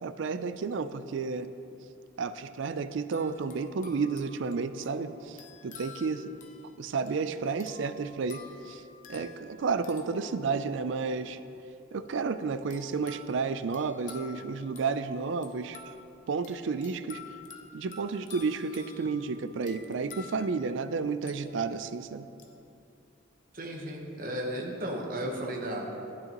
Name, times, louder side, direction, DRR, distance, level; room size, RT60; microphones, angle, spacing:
voice 1, 0.0-1.5 2.2-6.3 6.8-8.8 9.1-11.4 11.9-15.8 16.3-17.2 17.7-22.3, right 4 dB, 65° right, 12 dB, 0.4 m, -31 dB
sound 1, 3.1-11.0 12.7-21.9 22.4-22.6, left 5 dB, 40° left, 0.7 m, -51 dB
voice 2, 23.5-25.9, right 1 dB, 45° right, -1 dB, 1.1 m, -34 dB
12.0 x 9.4 x 3.0 m, 2.6 s
head